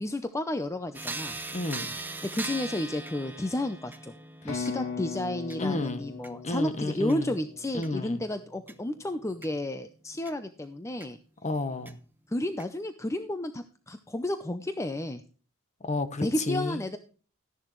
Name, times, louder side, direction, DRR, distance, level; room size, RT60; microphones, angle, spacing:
voice 1, 0.0-1.4 2.2-4.1 4.4-11.2 12.3-15.2 16.2-17.0, left 1 dB, 15° left, 0.6 m, -32 dB
sound 1, 0.9-10.3 11.0-11.1 11.9-12.0 12.6-12.7, right 2 dB, 10° right, 0.9 m, -42 dB
voice 2, 1.5-1.9 5.6-6.0 6.4-7.3 7.7-8.2 11.4-12.0 15.8-16.8, left 2 dB, 35° left, 1.1 m, -31 dB
sound 2, 4.5-8.3, left 5 dB, 90° left, 3.4 m, -39 dB
13.5 x 10.5 x 3.1 m
head